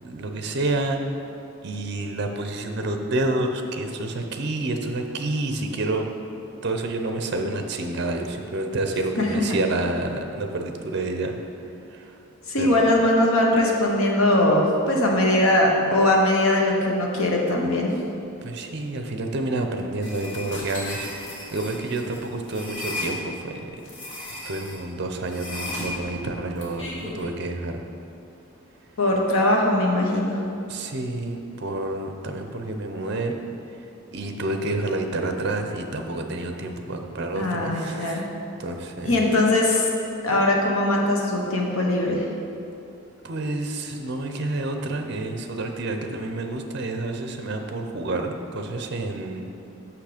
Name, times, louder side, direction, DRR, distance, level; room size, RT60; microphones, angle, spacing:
voice 1, 0.0-1.0 1.6-6.1 6.6-11.4 11.9-12.2 12.6-12.8 18.4-23.6 24.3-27.8 30.7-33.3 34.1-38.3 38.6-39.2 43.2-49.5, right 2 dB, 50° right, 5 dB, 0.6 m, -29 dB
voice 2, 9.2-9.6 12.5-17.9 29.0-30.4 37.3-38.2 39.0-39.9 40.2-42.3, left 1 dB, 80° left, -1 dB, 1.0 m, -21 dB
sound 1, 20.0-23.1 23.8-24.8 25.3-27.3, left 1 dB, 55° left, 1.4 m, -35 dB
6.3 x 5.9 x 5.0 m, 2.7 s
head